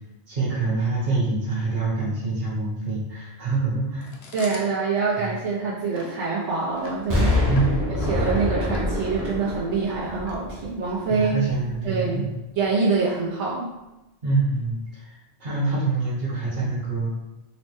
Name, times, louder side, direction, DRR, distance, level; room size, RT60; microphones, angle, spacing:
voice 1, 0.3-4.1 5.2-5.3 7.4-7.9 11.1-12.3 14.2-15.1 15.4-17.1, right 3 dB, 60° right, -7 dB, 1.4 m, -25 dB
Chewing mastication, 4.0-11.0, left 4 dB, 70° left, 0.8 m, -42 dB
voice 2, 4.3-7.3 8.1-11.4 11.8-12.3 12.6-13.7, right 4 dB, 85° right, -5 dB, 1.0 m, -25 dB
Explosion, 7.1-11.0 11.5-11.6, left 1 dB, 25° right, 0.5 m, -25 dB
3.9 x 2.1 x 3.0 m, 0.99 s
omnidirectional pair, 1.1 m